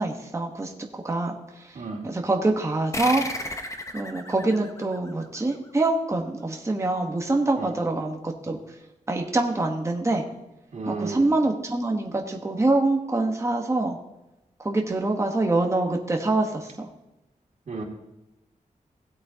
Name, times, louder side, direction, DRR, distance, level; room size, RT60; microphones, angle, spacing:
voice 1, 0.0-1.3 1.6-1.7 2.0-3.2 3.9-8.6 9.1-10.2 10.9-14.0 14.6-16.9, right 2 dB, 20° right, 1 dB, 1.1 m, -25 dB
voice 2, 1.7-2.1 7.6-7.7 10.7-11.2 17.7-17.8, right 3 dB, 65° right, -2 dB, 2.4 m, -33 dB
sound 1, 2.9-6.0, left 1 dB, 20° left, 0.9 m, -34 dB
16.0 x 8.4 x 2.8 m, 0.96 s
wide cardioid pair, 115°, 14 cm